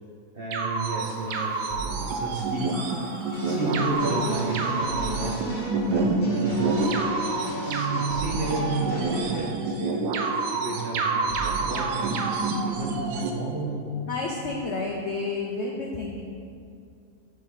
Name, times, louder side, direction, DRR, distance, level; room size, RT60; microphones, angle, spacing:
voice 1, 0.3-1.7 2.1-3.0 3.4-5.4 5.9-6.8 7.6-10.1 10.5-11.3 11.7-14.0, right 2 dB, 50° right, -3 dB, 0.7 m, -32 dB
sound 1, 0.5-13.3, right 3 dB, 85° right, 1.3 m, -28 dB
Fowl / Bird vocalization bird call bird song, 1.1-6.1, left 1 dB, 15° left, 0.8 m, -46 dB
sound 2, 3.3-9.4, right 2 dB, 30° left, 1.3 m, -32 dB
voice 2, 14.1-16.2, left 3 dB, 65° left, -1 dB, 0.7 m, -30 dB
6.6 x 3.7 x 5.5 m, 2.4 s
omnidirectional pair, 1.8 m